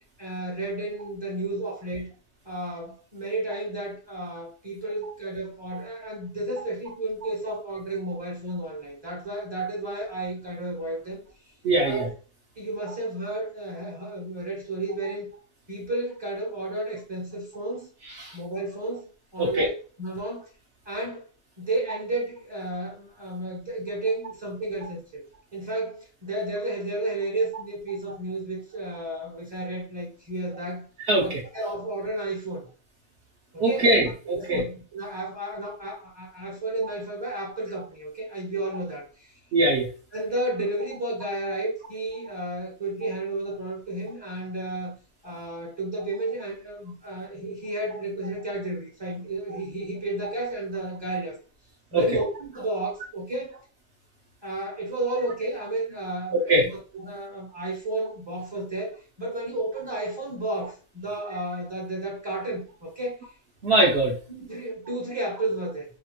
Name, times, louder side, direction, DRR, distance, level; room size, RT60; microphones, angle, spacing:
voice 1, 0.2-2.1 2.4-11.2 11.8-12.0 12.6-15.3 15.7-17.9 18.3-19.7 20.0-20.5 20.9-21.2 21.6-25.2 25.5-30.9 31.2-32.7 33.5-33.9 34.3-39.3 40.1-44.9 45.2-51.4 51.9-53.6 54.4-56.6 56.9-63.2 64.3-65.8, right 2 dB, 25° right, 0.6 m, -32 dB
voice 2, 11.6-12.1 18.2-18.4 19.4-19.7 31.1-31.4 33.6-34.6 39.5-39.9 51.9-52.2 56.5-56.7 63.6-64.1, right 1 dB, 60° right, 0.8 m, -21 dB
2.8 x 2.4 x 2.9 m
omnidirectional pair, 1.5 m